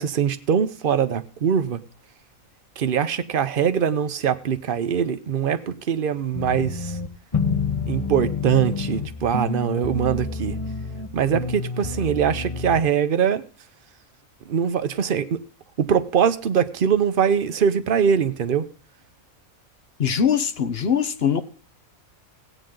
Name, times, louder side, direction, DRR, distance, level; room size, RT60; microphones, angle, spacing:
voice 1, 0.0-1.8 2.8-7.0 7.9-10.6 11.1-13.4 14.5-15.4 15.8-18.7, right 8 dB, 45° right, 0.8 m, -22 dB
sound 1, 6.3-12.8, left 4 dB, 25° left, 1.0 m, -28 dB
voice 2, 20.0-21.4, left 7 dB, 50° left, 1.0 m, -22 dB
16.5 x 9.0 x 3.8 m
omnidirectional pair, 1.5 m